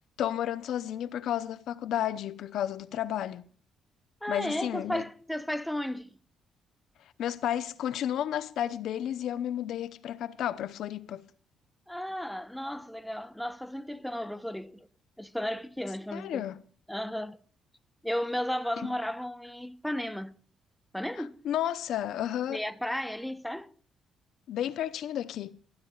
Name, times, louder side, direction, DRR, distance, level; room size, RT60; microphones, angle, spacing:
voice 1, 0.2-3.4 4.3-5.0 7.2-11.3 16.1-16.6 21.4-22.6 24.5-25.6, left 11 dB, 75° left, 0.8 m, -32 dB
voice 2, 4.2-6.2 11.9-14.9 15.2-16.5 16.9-17.4 18.0-20.3 20.9-21.4 22.5-23.7, left 1 dB, 5° left, 1.0 m, -34 dB
24.5 x 13.5 x 2.4 m
cardioid pair, 90°, 0 cm